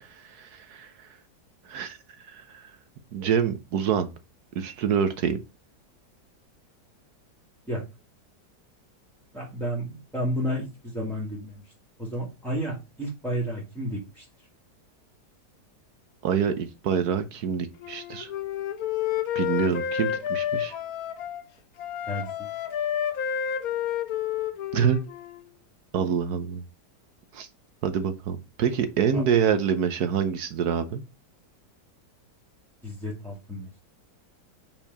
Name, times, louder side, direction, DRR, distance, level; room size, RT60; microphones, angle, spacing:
voice 1, 0.0-1.1 1.7-2.0 2.3-2.7 3.1-4.1 4.6-5.4 16.2-18.3 19.3-20.7 24.7-25.0 25.9-26.6 27.3-27.5 27.8-31.0, right 7 dB, 70° right, 9 dB, 1.3 m, -26 dB
voice 2, 9.3-11.6 12.0-14.2 22.1-22.3 29.1-29.2 32.8-33.7, equal, ahead, -2 dB, 2.0 m, -31 dB
Wind instrument woodwind instrument, 17.8-21.4 21.8-25.4, left 9 dB, 65° left, 1.2 m, -30 dB
5.7 x 4.5 x 5.4 m, 0.26 s
omnidirectional pair, 1.8 m